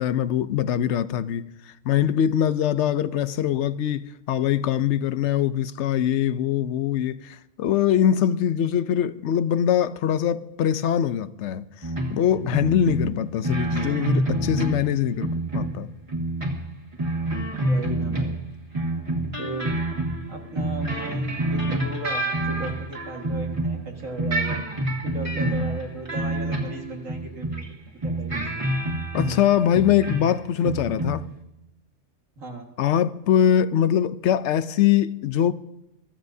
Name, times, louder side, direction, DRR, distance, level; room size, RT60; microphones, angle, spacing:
voice 1, 0.0-1.5 1.8-11.6 12.1-15.9 29.1-31.2 32.8-35.5, left 10 dB, 65° left, 0.9 m, -22 dB
sound 1, 11.8-12.2 12.5-14.9 15.2-18.5 18.7-23.9 24.2-27.7 28.0-30.3 30.6-31.3, right 1 dB, 25° right, 1.9 m, -27 dB
voice 2, 12.1-12.6 17.5-18.4 19.4-19.8 20.3-24.6 25.0-28.5 32.4-32.7, right 2 dB, 85° right, 2.2 m, -36 dB
22.5 x 15.0 x 2.7 m
omnidirectional pair, 1.3 m